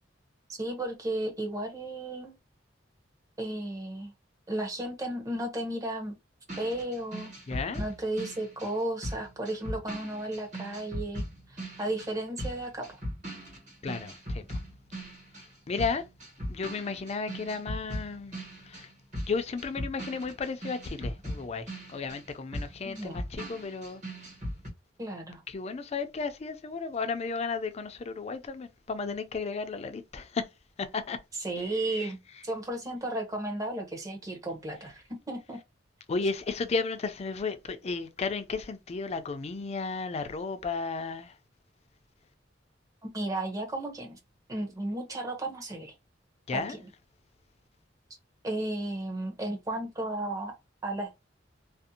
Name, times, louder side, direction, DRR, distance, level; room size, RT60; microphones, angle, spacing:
voice 1, 0.5-2.4 3.4-4.1 4.5-6.2 6.6-7.3 7.8-13.0 22.8-23.2 25.0-25.4 31.4-32.2 32.4-35.6 43.0-44.2 44.5-45.9 46.5-46.8 48.4-50.5 50.8-51.1, right 1 dB, 20° right, 0.7 m, -34 dB
sound 1, 6.5-15.5 15.8-24.7, equal, 40° right, 1.3 m, -39 dB
voice 2, 7.5-7.8 13.8-14.6 15.7-16.0 16.5-18.3 18.6-18.9 19.3-24.0 25.5-30.5 30.8-31.2 31.6-32.1 36.1-41.4 46.5-46.8, left 4 dB, 35° left, 0.4 m, -34 dB
2.5 x 2.0 x 2.7 m
head